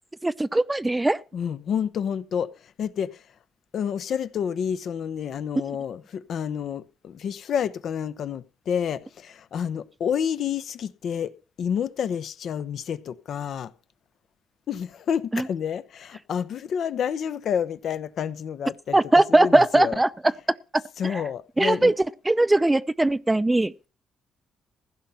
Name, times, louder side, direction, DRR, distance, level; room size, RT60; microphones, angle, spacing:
voice 1, 0.2-1.2 15.3-15.4 18.9-20.1 21.1-21.2 21.6-21.9 22.3-23.9, right 2 dB, 15° right, 0.5 m, -20 dB
voice 2, 1.3-3.3 3.7-13.7 14.7-20.0 20.3-20.4 21.0-22.0, left 8 dB, 65° left, 0.8 m, -29 dB
15.5 x 5.6 x 8.8 m
cardioid pair, 90°, 0 cm